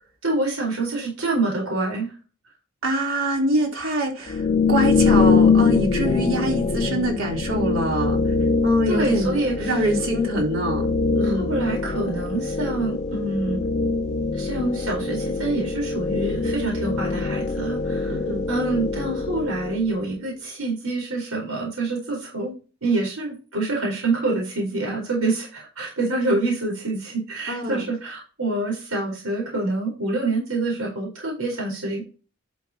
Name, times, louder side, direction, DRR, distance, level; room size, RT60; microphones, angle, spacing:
voice 1, 0.2-2.1 8.9-9.9 11.2-13.6 14.3-18.2 18.5-32.0, right 2 dB, 90° right, 4.4 m, -26 dB
voice 2, 2.8-8.2 8.6-11.5 18.1-18.5 27.5-27.8, equal, 70° right, 3.6 m, -24 dB
sound 1, 4.3-20.0, left 4 dB, 35° left, 0.4 m, -23 dB
11.0 x 6.1 x 2.9 m
head